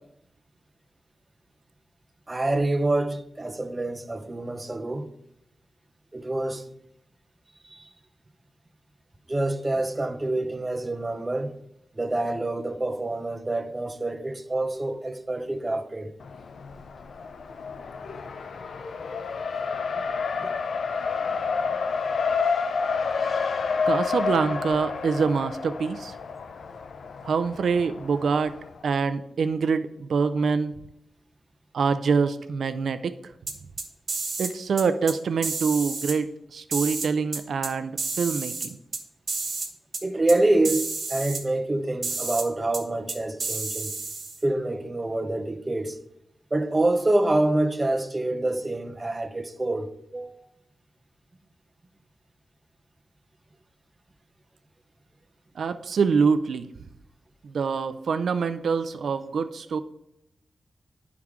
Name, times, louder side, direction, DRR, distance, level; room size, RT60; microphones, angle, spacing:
voice 1, 2.3-5.1 6.1-6.7 7.6-7.9 9.3-11.6 12.0-16.1 20.4-20.5 40.0-43.9 44.4-46.0 46.5-50.5, right 2 dB, 25° right, 0.7 m, -26 dB
Race car auto racing, 16.2-28.8, left 5 dB, 75° left, 0.5 m, -30 dB
voice 2, 23.9-26.2 27.2-28.5 28.8-30.7 31.7-33.3 34.4-38.8 55.6-56.7 57.5-59.8, right 5 dB, 85° right, 0.4 m, -25 dB
sound 1, 33.5-34.5 34.8-35.1 35.4-36.2 36.7-37.7 38.0-39.0 39.3-39.7 39.9-40.0 40.3-40.4 40.6-41.4 42.0-42.5 42.7-42.8 43.1-44.4, right 3 dB, 55° right, 1.2 m, -31 dB
11.5 x 4.7 x 3.6 m
wide cardioid pair, 90°, 0 cm